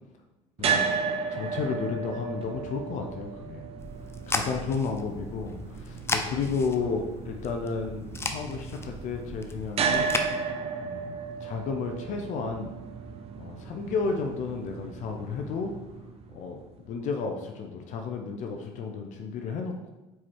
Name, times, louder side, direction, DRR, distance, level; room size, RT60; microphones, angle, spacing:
sound 1, 0.6-16.7, right 5 dB, 40° right, 0.7 m, -34 dB
voice 1, 1.3-3.7 4.3-10.4 10.8-12.7 13.4-15.7 16.3-16.6 16.8-19.9, left 5 dB, 55° left, 3 dB, 0.8 m, -32 dB
sound 2, 3.8-10.3, left 2 dB, 15° left, 0.6 m, -35 dB
4.7 x 4.6 x 4.4 m, 1.0 s
supercardioid pair, 90°, 15 cm